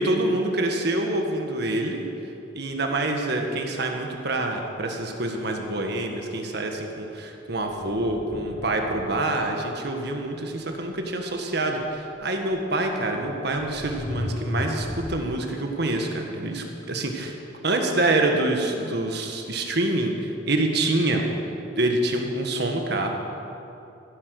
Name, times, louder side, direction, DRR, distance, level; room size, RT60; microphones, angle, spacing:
voice 1, 0.0-2.1 2.5-17.4 17.6-21.2 21.8-23.1, right 2 dB, 60° right, 3 dB, 1.6 m, -26 dB
sound 1, 7.7-9.5 12.5-12.6 13.5-15.4, left 1 dB, 25° left, 0.6 m, -34 dB
16.5 x 10.0 x 6.5 m, 2.9 s
head